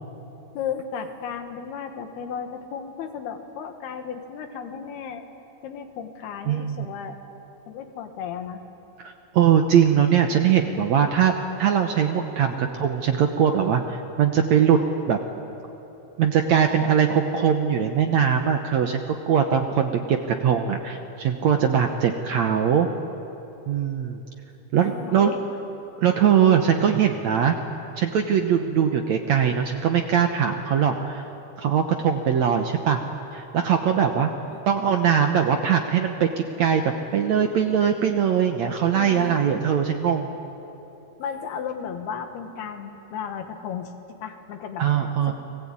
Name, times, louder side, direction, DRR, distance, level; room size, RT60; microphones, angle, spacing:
voice 1, 0.6-5.3 5.6-7.2 7.7-8.6 24.8-25.4 34.4-34.6 38.9-39.4 41.2-43.9 44.2-44.8 45.3-45.4, left 7 dB, 85° left, 6 dB, 3.6 m, -34 dB
voice 2, 6.5-6.9 9.0-11.3 11.6-14.8 15.1-15.2 16.2-22.9 23.7-24.2 24.7-25.3 26.0-27.5 28.0-31.2 31.6-33.0 33.3-34.3 34.7-40.3 44.8-45.3, right 8 dB, 70° right, 5 dB, 1.8 m, -21 dB
30.0 x 21.0 x 8.7 m, 3.0 s
omnidirectional pair, 4.4 m